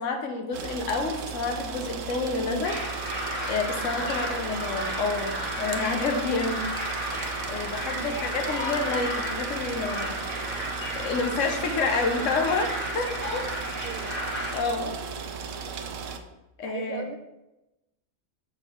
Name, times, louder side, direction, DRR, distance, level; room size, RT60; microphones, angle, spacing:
voice 1, 0.0-2.8 3.5-7.0 7.5-10.2 11.0-13.4 14.5-15.0 16.6-17.0, left 3 dB, 75° left, 4 dB, 1.2 m, -29 dB
sound 1, 0.5-16.2, right 6 dB, 80° right, 0.9 m, -36 dB
sound 2, 2.6-14.6, equal, 10° left, 1.4 m, -33 dB
voice 2, 4.0-4.5 7.9-8.4 11.7-11.8 13.8-14.1 16.7-17.2, right 7 dB, 55° right, 7 dB, 0.5 m, -40 dB
6.2 x 4.2 x 4.5 m, 0.96 s
omnidirectional pair, 1.3 m